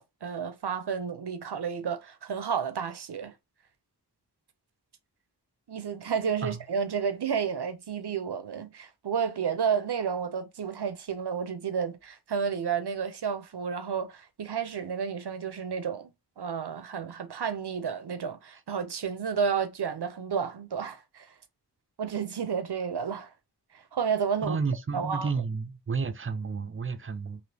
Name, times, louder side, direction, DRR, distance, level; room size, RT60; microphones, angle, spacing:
voice 1, 0.0-3.3 5.7-21.3 22.0-23.3 23.7-24.6 24.9-25.3, right 6 dB, 75° right, 0.6 m, -31 dB
voice 2, 24.4-27.4, right 5 dB, 30° right, 0.5 m, -31 dB
3.4 x 2.7 x 2.7 m
wide cardioid pair, 55°, 40 cm